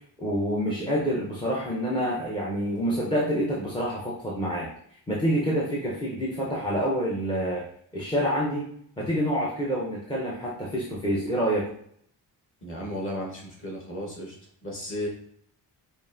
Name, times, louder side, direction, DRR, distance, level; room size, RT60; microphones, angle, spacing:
voice 1, 0.2-4.7 5.1-7.6 7.9-8.7 9.0-11.7, equal, 10° left, -5 dB, 0.5 m, -27 dB
voice 2, 12.6-14.4 14.6-15.1, equal, 30° left, -2 dB, 1.1 m, -34 dB
5.2 x 2.4 x 2.5 m, 0.65 s
cardioid pair, 175°, 42 cm